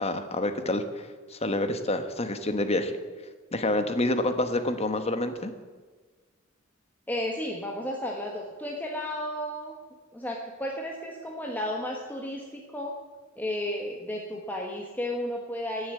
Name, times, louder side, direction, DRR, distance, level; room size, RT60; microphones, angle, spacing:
voice 1, 0.0-2.9 3.5-5.5, left 1 dB, 30° left, 9 dB, 1.1 m, -28 dB
voice 2, 7.1-9.7 10.1-12.9 13.4-15.9, left 1 dB, 10° left, -1 dB, 1.3 m, -33 dB
16.0 x 7.2 x 8.1 m, 1.4 s
head